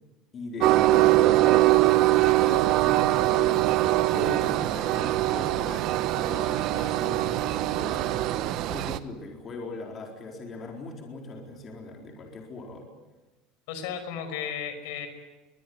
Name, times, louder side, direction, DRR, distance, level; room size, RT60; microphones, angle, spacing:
voice 1, 0.3-1.7 2.3-3.8 4.1-8.3 8.7-12.9, left 3 dB, 30° left, 1 dB, 4.2 m, -39 dB
Train, 0.6-9.0, right 16 dB, 50° right, 1.2 m, -22 dB
voice 2, 13.7-15.1, left 8 dB, 70° left, 8 dB, 5.6 m, -34 dB
23.0 x 20.0 x 9.6 m, 1.2 s
supercardioid pair, 145°, 0 cm